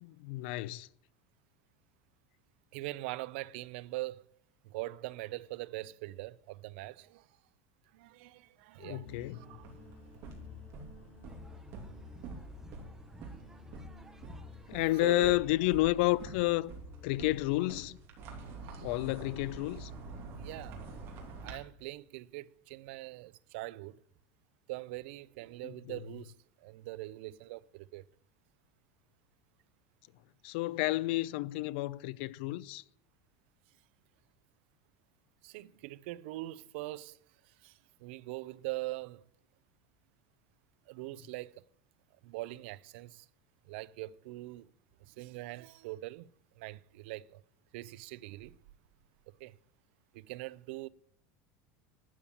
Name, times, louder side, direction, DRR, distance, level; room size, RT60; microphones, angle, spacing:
voice 1, 0.0-0.9 8.8-9.4 14.7-16.7 17.0-18.0 18.8-19.9 25.6-26.0 30.4-32.8, left 19 dB, 60° left, 0.5 m, -31 dB
voice 2, 2.7-4.3 4.6-7.3 7.9-9.7 14.9-15.4 18.6-19.0 20.4-20.8 21.4-24.0 24.7-26.3 26.6-28.0 35.4-37.2 37.4-39.2 40.9-41.6 42.2-43.3 43.7-44.7 45.0-46.3 46.6-47.4 47.7-48.6 49.3-49.5 50.1-50.9, right 19 dB, 65° right, 0.6 m, -42 dB
sound 1, 9.0-17.3, left 4 dB, 20° left, 4.9 m, -53 dB
sound 2, 9.4-21.5, right 3 dB, 40° right, 3.3 m, -47 dB
sound 3, 11.2-16.4, right 2 dB, 5° right, 1.0 m, -57 dB
12.5 x 8.8 x 9.8 m
cardioid pair, 175°, 7 cm